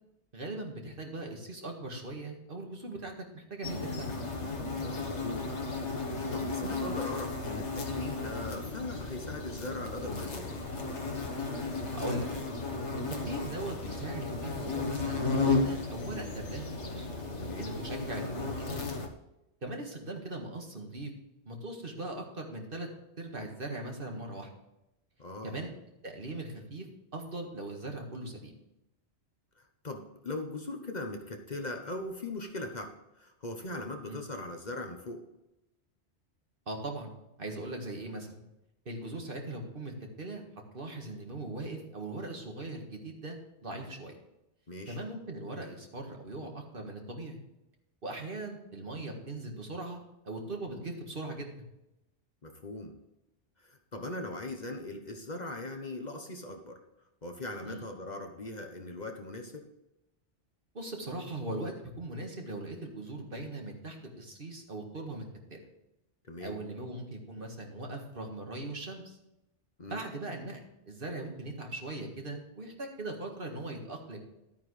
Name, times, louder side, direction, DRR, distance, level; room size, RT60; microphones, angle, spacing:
voice 1, 0.3-4.1 11.9-12.4 13.1-17.1 17.6-18.8 19.6-21.1 21.5-22.9 23.2-24.5 25.4-25.7 26.0-26.9 27.1-28.5 34.1-34.2 36.7-37.1 37.4-38.4 38.9-40.4 40.7-43.4 43.6-44.1 44.9-47.4 48.0-51.5 57.6-57.9 60.7-65.2 65.5-65.6 66.4-69.2 69.9-74.2, right 2 dB, 50° right, 2 dB, 1.9 m, -40 dB
sound 1, 3.6-19.1, left 3 dB, 80° left, 1.6 m, -34 dB
voice 2, 4.8-5.5 6.0-10.6 17.4-17.7 25.2-25.6 29.6-35.2 44.7-45.0 52.4-53.0 53.6-56.8 57.2-59.6 66.2-66.6 69.8-70.0, left 2 dB, 40° left, 5 dB, 1.1 m, -40 dB
12.0 x 9.2 x 3.3 m, 0.91 s
omnidirectional pair, 1.2 m